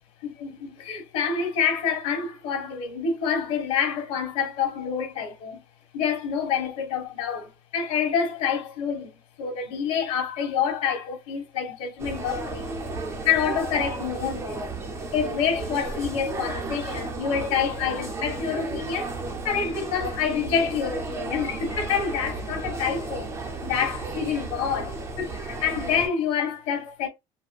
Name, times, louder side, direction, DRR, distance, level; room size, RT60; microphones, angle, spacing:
voice 1, 0.2-5.6 5.9-12.8 13.2-14.7 15.1-19.1 19.4-23.3 23.6-27.1, left 7 dB, 90° left, 1.5 m, -27 dB
sound 1, 12.0-26.1, right 3 dB, 25° right, 0.6 m, -33 dB
4.2 x 2.1 x 2.3 m
cardioid pair, 180°, 11 cm